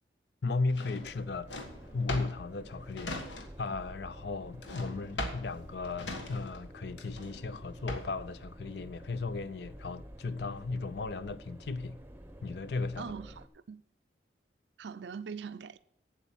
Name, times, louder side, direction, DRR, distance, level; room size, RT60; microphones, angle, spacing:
voice 1, 0.4-1.5 1.9-12.0 12.4-13.1, left 3 dB, 65° left, 0.5 m, -36 dB
Drawer open or close, 0.7-3.8 4.0-8.3, left 1 dB, 85° left, 1.5 m, -40 dB
sound 1, 1.0-13.5, equal, 10° right, 0.7 m, -50 dB
voice 2, 13.0-13.8 14.8-15.8, right 6 dB, 75° right, 0.5 m, -42 dB
8.2 x 8.2 x 7.1 m
head